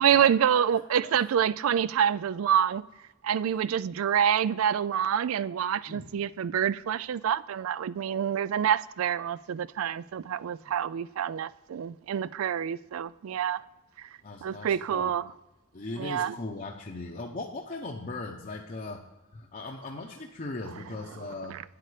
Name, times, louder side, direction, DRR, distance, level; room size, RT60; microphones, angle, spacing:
voice 1, 0.0-2.8 3.2-13.6 14.0-14.1 14.4-15.3 16.0-16.3 21.5-21.6, right 9 dB, 80° right, 0.3 m, -27 dB
voice 2, 14.2-15.1 15.7-19.1 19.3-21.6, left 2 dB, 40° left, 0.7 m, -39 dB
9.1 x 8.6 x 4.9 m
head